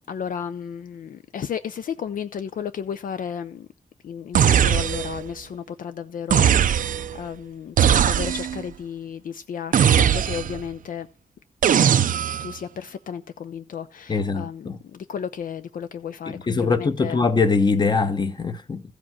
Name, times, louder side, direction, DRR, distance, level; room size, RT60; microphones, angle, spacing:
voice 1, 0.0-3.7 4.0-11.1 12.4-17.2, left 7 dB, 65° left, 0.6 m, -33 dB
sound 1, 4.3-5.3 6.3-7.2 7.8-8.6 9.7-10.7 11.6-12.5, right 9 dB, 65° right, 0.5 m, -19 dB
voice 2, 14.1-14.8 16.3-18.8, left 4 dB, 30° left, 0.9 m, -22 dB
15.0 x 5.1 x 5.7 m
wide cardioid pair, 160°, 15 cm